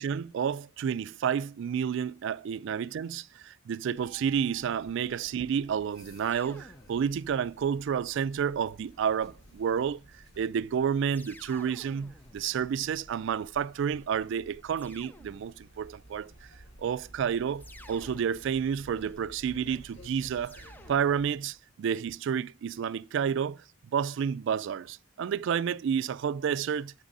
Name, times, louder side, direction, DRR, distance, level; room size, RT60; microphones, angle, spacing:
voice 1, 0.0-10.0 10.4-16.3 16.8-26.9, right 7 dB, 65° right, 0.3 m, -30 dB
sound 1, 3.9-21.3, right 1 dB, 60° left, 2.1 m, -54 dB
sound 2, 6.3-7.5 9.0-9.8 11.1-13.4 14.8-15.9 17.6-18.9 20.4-21.7, left 1 dB, 10° left, 0.5 m, -54 dB
8.0 x 3.7 x 5.3 m
head